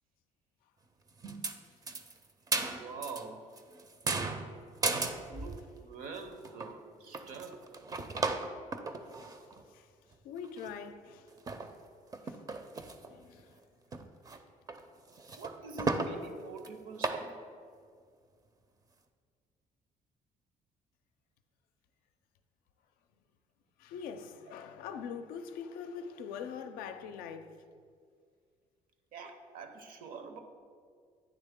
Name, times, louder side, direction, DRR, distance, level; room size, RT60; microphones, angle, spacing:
sound 1, 1.2-1.6 1.9-3.2 3.6-5.7 6.1-6.2 6.4-6.7 7.1-9.6 10.1-10.2 10.4-10.9 11.4-11.7 12.1-13.1 13.4-13.5 13.9-14.4 14.7-14.8 15.1-16.1 16.6-16.7 17.0-17.3, right 3 dB, 25° right, 0.4 m, -35 dB
voice 1, 2.6-3.5 4.8-7.8 15.4-17.4 24.5-24.6 29.1-30.4, right 4 dB, 70° right, 0.7 m, -46 dB
voice 2, 10.2-11.2 12.2-12.4 13.1-13.5 23.8-27.5, left 7 dB, 90° left, 0.4 m, -43 dB
9.5 x 3.2 x 3.5 m
cardioid pair, 100°, 15 cm